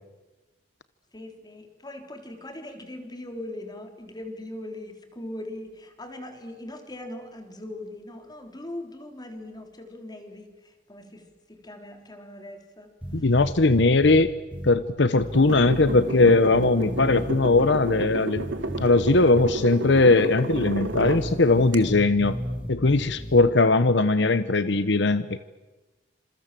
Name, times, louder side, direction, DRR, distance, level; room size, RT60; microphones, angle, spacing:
voice 1, 1.1-13.3, left 1 dB, 20° left, 6 dB, 3.7 m, -40 dB
sound 1, 13.0-14.2 14.5-14.7 15.2-18.0 18.3-19.5 19.8-20.0 20.5-23.4, equal, 5° right, 5.1 m, -34 dB
voice 2, 13.1-14.3 14.6-18.5 18.8-22.4 22.7-25.4, left 3 dB, 70° left, 13 dB, 0.9 m, -20 dB
sound 2, 15.3-21.3 21.7-21.8, right 2 dB, 80° right, 2.2 m, -32 dB
28.0 x 27.0 x 7.6 m, 1.2 s
head